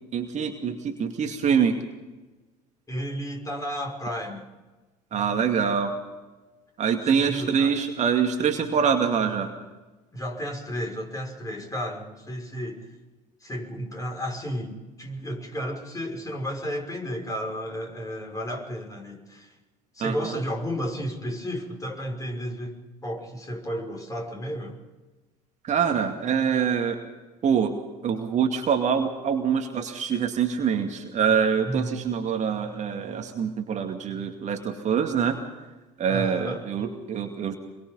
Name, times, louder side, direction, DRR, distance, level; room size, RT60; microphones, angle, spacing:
voice 1, 0.1-1.8 5.1-5.9 6.8-9.5 20.0-20.3 25.6-27.0 27.4-27.8 28.0-35.4 36.0-37.6, right 7 dB, 40° right, 4 dB, 2.3 m, -25 dB
voice 2, 2.9-4.4 7.0-7.7 10.1-12.9 13.4-19.5 19.9-24.8 31.7-31.9 36.1-36.6, equal, 20° left, 2 dB, 5.9 m, -33 dB
25.5 x 22.5 x 5.5 m, 1.2 s
figure-of-eight pair, 65°, 18 cm